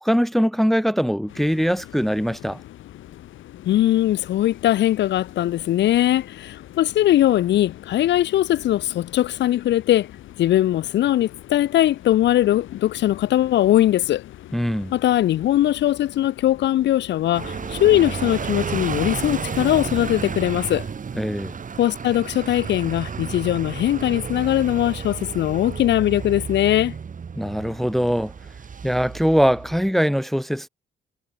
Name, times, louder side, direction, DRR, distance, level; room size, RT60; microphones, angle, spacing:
voice 1, 0.0-2.6 14.5-14.9 21.1-21.6 27.4-28.3 28.8-30.7, equal, ahead, 1.2 m, -22 dB
sound 1, 1.3-20.3, left 13 dB, 80° left, 5.0 m, -43 dB
voice 2, 3.6-10.1 10.4-14.2 14.9-20.9 21.8-26.9, left 13 dB, 65° left, 0.6 m, -20 dB
sound 2, 17.3-29.9, right 6 dB, 40° right, 3.3 m, -32 dB
cardioid pair, 90°, 20 cm